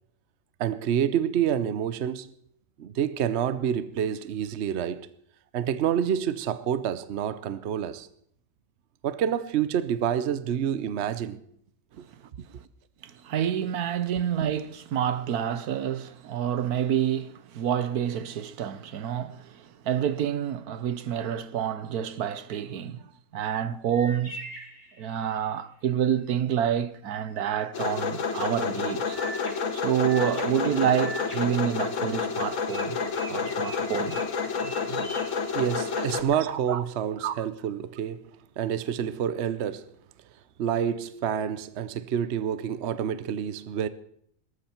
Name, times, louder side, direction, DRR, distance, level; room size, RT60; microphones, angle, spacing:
voice 1, 0.6-2.3 2.8-5.1 5.5-8.1 9.0-11.4 35.5-38.2 38.6-39.9 40.6-43.9, right 9 dB, 55° right, 0.9 m, -28 dB
voice 2, 13.0-23.0 23.3-24.4 25.0-29.2 29.7-33.0 33.3-34.4 34.6-35.0 36.4-36.8 37.2-37.4, right 9 dB, 90° right, 1.4 m, -28 dB
sound 1, 23.9-25.6 29.1-32.3 32.7-36.1, right 2 dB, 25° left, 5.1 m, -43 dB
sound 2, 27.7-36.2, left 5 dB, 60° left, 1.5 m, -29 dB
18.5 x 13.5 x 4.4 m
omnidirectional pair, 1.6 m